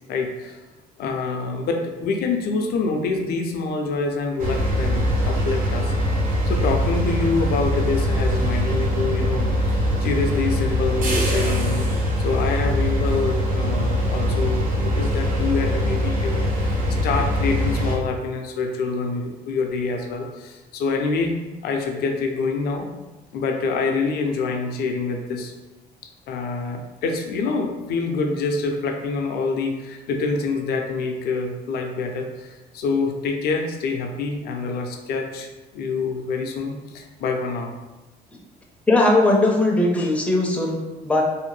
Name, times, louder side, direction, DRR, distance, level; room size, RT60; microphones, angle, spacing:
voice 1, 0.1-0.6 1.0-5.9 6.5-11.8 12.2-21.3 21.6-22.9 23.3-25.5 26.3-35.5 35.7-37.7, left 4 dB, 70° left, 3 dB, 0.5 m, -26 dB
sound 1, 4.4-18.0, equal, 55° right, 0.7 m, -22 dB
voice 2, 38.9-40.8 41.0-41.2, left 2 dB, 5° left, -1 dB, 0.5 m, -18 dB
2.6 x 2.1 x 3.1 m, 1.1 s
cardioid pair, 110°, 17 cm